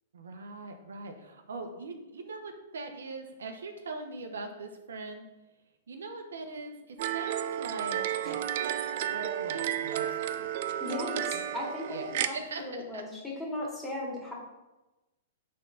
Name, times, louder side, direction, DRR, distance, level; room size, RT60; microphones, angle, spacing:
voice 1, 0.1-5.2 5.9-8.7 9.1-10.6 11.3-11.4 11.9-13.0, right 3 dB, 85° right, 5 dB, 1.0 m, -41 dB
sound 1, 7.0-12.3, right 10 dB, 55° right, 0.5 m, -32 dB
voice 2, 10.8-14.3, left 2 dB, 5° left, -4 dB, 2.2 m, -37 dB
6.5 x 3.8 x 5.7 m, 1.0 s
hypercardioid pair, 135°, 0 cm